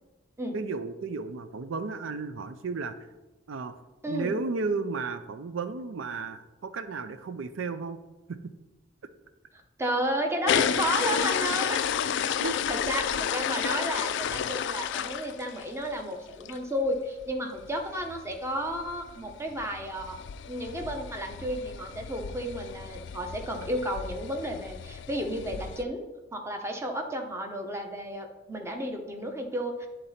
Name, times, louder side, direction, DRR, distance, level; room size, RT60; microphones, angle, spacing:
voice 1, 0.5-3.0 3.5-3.8 4.1-8.0 8.3-8.4 12.2-12.6, right 4 dB, 80° right, 11 dB, 0.5 m, -33 dB
voice 2, 4.0-4.4 9.8-11.9 12.4-20.2 20.5-26.0 26.3-29.9, equal, 15° right, 3 dB, 0.8 m, -32 dB
sound 1, 10.5-15.9 16.3-16.6 16.9-17.0 17.2-17.3 17.6-25.8, left 8 dB, 65° left, 0.3 m, -32 dB
10.0 x 3.9 x 4.2 m, 1.1 s
head